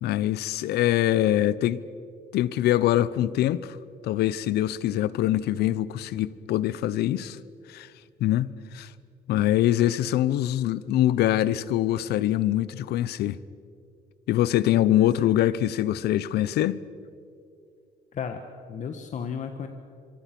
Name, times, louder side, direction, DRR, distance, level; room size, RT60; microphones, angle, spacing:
voice 1, 0.0-1.8 2.3-3.8 4.0-7.4 7.7-7.9 8.2-8.9 9.3-13.4 14.3-16.8, left 13 dB, 75° left, 0.8 m, -24 dB
voice 2, 14.9-15.3 18.1-18.4 18.7-19.7, left 7 dB, 45° left, 1.5 m, -33 dB
26.5 x 23.5 x 6.1 m
cardioid pair, 110°, 17 cm